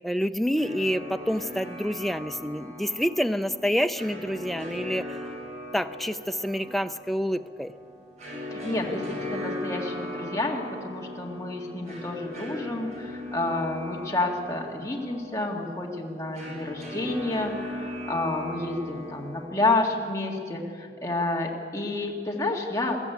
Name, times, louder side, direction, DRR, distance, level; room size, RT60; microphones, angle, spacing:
voice 1, 0.0-5.2 5.7-7.7, equal, ahead, 9 dB, 0.5 m, -28 dB
sound 1, 0.6-19.5, left 1 dB, 40° right, 6.3 m, -39 dB
voice 2, 8.5-23.0, left 2 dB, 15° left, -1 dB, 2.0 m, -29 dB
21.5 x 14.0 x 9.4 m, 2.1 s
head